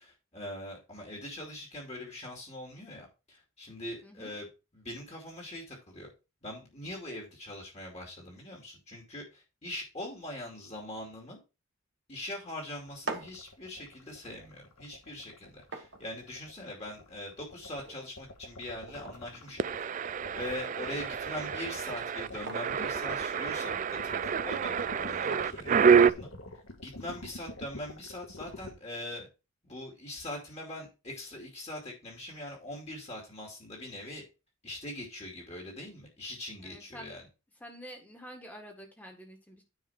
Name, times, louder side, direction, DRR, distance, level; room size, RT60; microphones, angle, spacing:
voice 1, 0.0-4.5 4.7-6.1 6.4-11.4 12.1-26.3 26.8-29.3 29.6-34.2 34.6-37.2, left 1 dB, 30° left, 0 dB, 2.5 m, -42 dB
voice 2, 4.0-4.3 20.8-21.0 36.6-37.2 37.6-39.6, equal, 10° left, 2 dB, 1.8 m, -48 dB
sound 1, 12.8-26.7, right 3 dB, 55° right, 1.3 m, -48 dB
sound 2, 12.9-28.7, left 2 dB, 85° left, 1.6 m, -46 dB
sound 3, 19.6-26.1, right 6 dB, 40° right, 0.3 m, -27 dB
9.6 x 4.8 x 4.3 m, 0.29 s
head